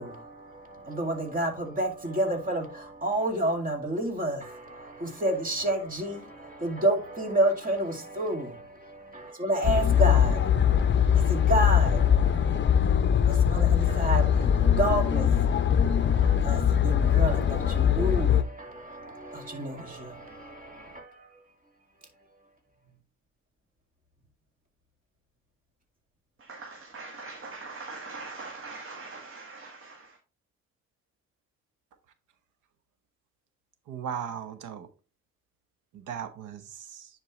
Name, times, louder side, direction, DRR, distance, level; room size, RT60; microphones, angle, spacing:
voice 1, 0.0-21.4, right 1 dB, 30° right, 2.2 m, -30 dB
sound 1, 9.6-18.4, left 8 dB, 40° left, 0.6 m, -22 dB
voice 2, 26.4-30.2, right 3 dB, 45° right, 1.6 m, -42 dB
voice 3, 33.9-34.9 35.9-37.1, right 8 dB, 85° right, 1.1 m, -37 dB
9.9 x 4.6 x 3.1 m
cardioid pair, 90°, 30 cm